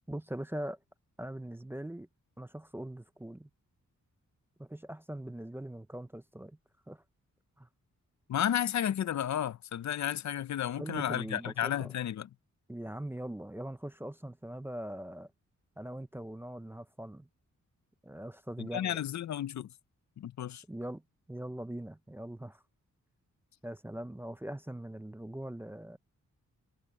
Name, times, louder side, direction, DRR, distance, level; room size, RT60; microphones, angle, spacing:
voice 1, 0.1-0.8 1.2-2.1 2.4-3.5 4.6-6.6 6.9-7.0 7.6-7.7 10.8-11.9 12.7-15.3 15.8-17.3 18.0-19.0 20.7-21.0 21.3-22.6 23.6-26.0, right 1 dB, 5° right, 0.5 m, -41 dB
voice 2, 8.3-12.3 18.6-19.7 20.2-20.6, left 10 dB, 65° left, 0.6 m, -32 dB
wide cardioid pair, 170°, 31 cm